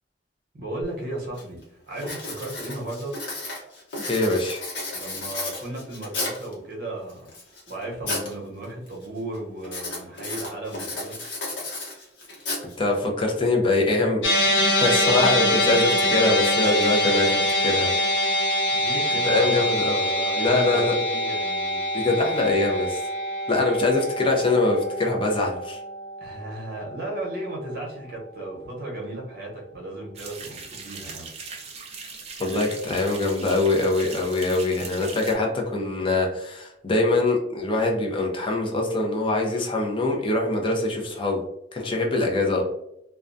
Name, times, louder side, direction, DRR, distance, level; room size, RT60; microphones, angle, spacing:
voice 1, 0.5-3.1 4.9-7.3 7.7-11.2 18.7-21.9 26.2-31.3, right 1 dB, 55° right, -1 dB, 0.8 m, -35 dB
Writing, 0.8-0.9 1.4-1.6 2.0-6.5 7.1-8.3 8.6-9.1 9.6-13.1, left 2 dB, 70° left, 0.9 m, -33 dB
voice 2, 4.1-4.6 12.8-14.2 14.5-18.5 19.3-20.1 20.4-20.9 21.9-23.0 23.5-25.8 32.4-41.4 41.7-42.6, left 2 dB, 30° left, 0 dB, 0.5 m, -23 dB
sound 1, 14.2-26.7, left 1 dB, 90° left, 0.5 m, -24 dB
sound 2, 30.1-35.3, right 4 dB, 35° right, 0.4 m, -39 dB
2.3 x 2.2 x 2.5 m, 0.80 s
head